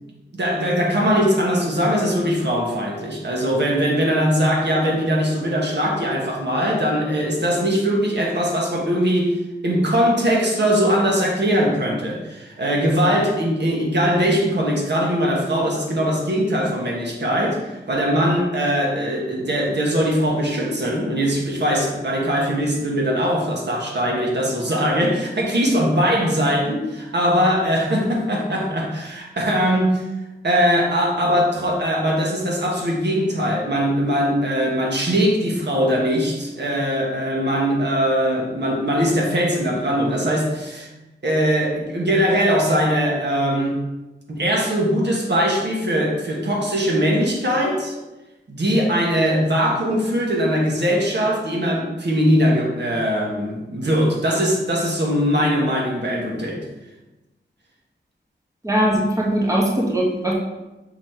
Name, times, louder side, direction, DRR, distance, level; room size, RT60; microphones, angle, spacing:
voice 1, 0.3-9.3 9.6-30.1 30.4-40.9 41.2-43.8 44.3-47.9 48.5-56.6, equal, 60° right, -2 dB, 1.5 m, -21 dB
voice 2, 58.6-60.3, right 1 dB, 15° right, -2 dB, 1.1 m, -20 dB
6.2 x 4.1 x 4.5 m, 1.0 s
wide cardioid pair, 115°, 20 cm